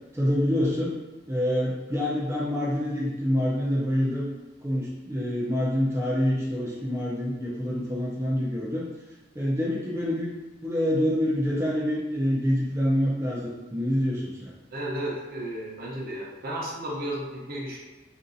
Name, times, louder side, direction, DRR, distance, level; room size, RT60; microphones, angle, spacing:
voice 1, 0.1-0.9 1.3-4.2 4.6-8.9 9.3-10.3 10.6-14.5, equal, 15° right, -6 dB, 0.4 m, -26 dB
voice 2, 14.7-17.8, right 1 dB, 55° right, -4 dB, 0.7 m, -33 dB
2.9 x 2.6 x 2.5 m, 1.2 s
head